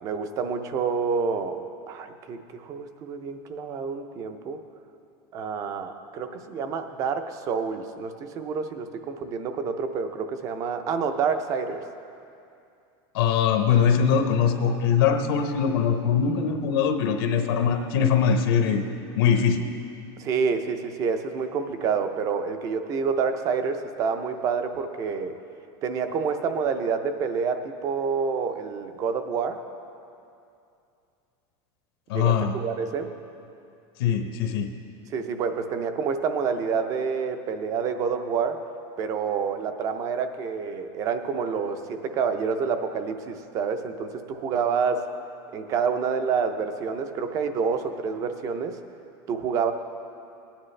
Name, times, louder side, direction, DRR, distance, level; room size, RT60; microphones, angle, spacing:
voice 1, 0.0-4.6 5.3-11.8 20.2-25.3 25.8-29.6 32.1-33.1 35.1-38.6 39.0-45.1 45.5-48.8 49.3-49.7, right 5 dB, 25° right, 8 dB, 0.5 m, -28 dB
voice 2, 13.1-18.8 19.2-19.7 32.1-32.5 34.0-34.7, left 7 dB, 70° left, 5 dB, 0.9 m, -22 dB
18.5 x 10.0 x 3.2 m, 2.6 s
supercardioid pair, 180°, 13 cm